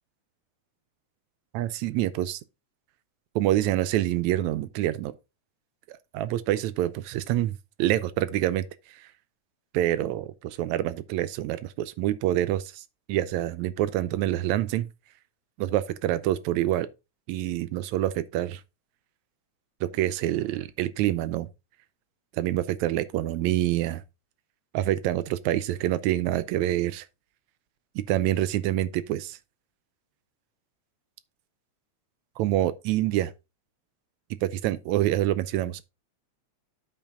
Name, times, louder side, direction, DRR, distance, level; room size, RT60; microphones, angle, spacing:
voice 1, 1.5-2.4 3.4-5.1 5.9-7.5 7.8-9.1 9.7-12.8 13.1-14.9 15.6-16.9 17.3-18.6 19.8-21.5 22.3-24.0 24.7-27.1 28.0-29.4 32.4-33.3 34.4-35.8, right 13 dB, 85° right, 1.9 m, -26 dB
8.7 x 5.7 x 3.7 m
omnidirectional pair, 3.3 m